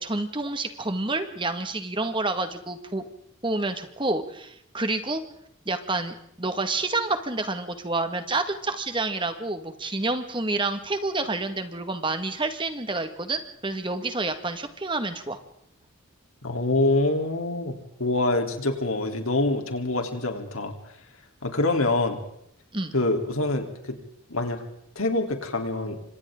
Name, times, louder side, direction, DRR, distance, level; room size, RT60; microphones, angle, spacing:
voice 1, 0.0-3.0 3.4-5.2 5.7-15.4 22.7-22.9, right 2 dB, 25° right, 8 dB, 1.7 m, -28 dB
voice 2, 16.4-20.7 21.4-22.2 22.9-24.0 24.3-24.6 25.0-26.0, left 2 dB, 85° left, 4 dB, 3.5 m, -25 dB
28.5 x 26.0 x 3.8 m, 0.73 s
head